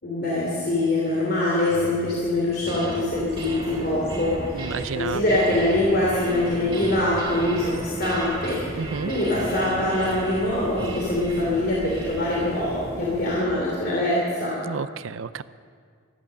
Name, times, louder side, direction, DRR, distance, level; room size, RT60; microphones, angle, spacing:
voice 1, 0.0-4.4 4.9-14.6, left 1 dB, 50° left, -5 dB, 3.1 m, -24 dB
sound 1, 1.6-6.3 6.7-7.1 7.6-7.9 8.2-8.7 9.0-9.6 9.8-10.2 10.7-10.9, equal, 15° left, 3.3 m, -42 dB
sound 2, 2.4-3.1 3.4-13.8, right 1 dB, 25° right, 2.0 m, -36 dB
sound 3, 3.1-13.4, equal, 35° left, 3.5 m, -39 dB
voice 2, 4.5-5.2 8.7-9.1 14.7-15.4, right 6 dB, 80° right, 15 dB, 0.5 m, -31 dB
15.0 x 12.5 x 7.0 m, 2.1 s
head